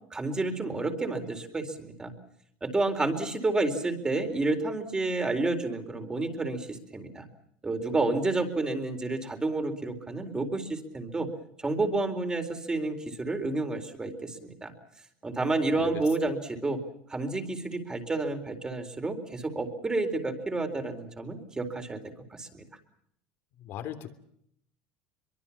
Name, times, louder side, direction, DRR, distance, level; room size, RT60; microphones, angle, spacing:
voice 1, 0.1-2.1 2.6-7.3 7.6-11.3 11.6-14.7 15.2-16.8 17.1-22.0 22.3-22.6, right 2 dB, 15° right, 6 dB, 4.2 m, -30 dB
voice 2, 23.6-24.1, left 11 dB, 60° left, 9 dB, 3.1 m, -38 dB
23.5 x 23.5 x 7.3 m, 0.71 s
supercardioid pair, 105°, 4 cm